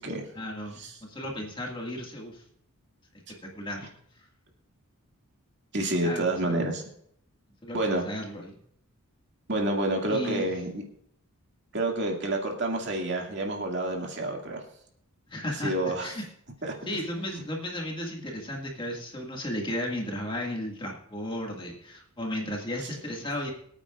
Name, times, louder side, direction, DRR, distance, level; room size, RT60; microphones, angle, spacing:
voice 1, 0.3-2.4 3.4-3.9 6.0-6.6 7.6-8.6 10.1-10.5 15.3-16.2 16.9-23.5, left 1 dB, 20° left, -1 dB, 2.0 m, -34 dB
voice 2, 5.7-6.8 7.7-8.0 9.5-10.8 11.7-14.6 15.6-16.1 16.6-17.4 22.8-22.9, right 2 dB, 50° right, 1 dB, 2.2 m, -29 dB
24.0 x 9.0 x 2.5 m, 0.68 s
head